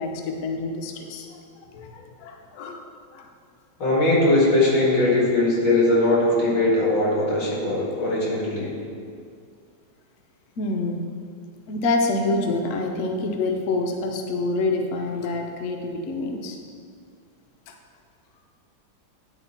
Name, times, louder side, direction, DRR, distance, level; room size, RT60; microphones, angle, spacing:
voice 1, 0.0-1.4 1.7-2.8 3.1-3.3 10.6-11.0 11.7-16.6 17.7-17.8, left 2 dB, 60° left, 3 dB, 0.8 m, -27 dB
voice 2, 3.8-8.7, left 2 dB, 80° left, -5 dB, 2.5 m, -20 dB
9.6 x 4.2 x 4.3 m, 2.2 s
omnidirectional pair, 1.9 m